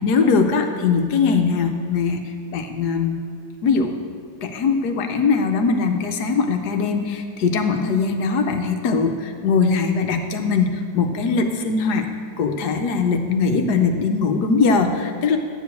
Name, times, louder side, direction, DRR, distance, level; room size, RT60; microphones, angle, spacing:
voice 1, 0.0-3.2 3.6-4.0 4.4-12.1 12.4-15.4, left 4 dB, 70° left, 5 dB, 1.3 m, -21 dB
11.0 x 4.9 x 8.2 m, 2.2 s
omnidirectional pair, 1.9 m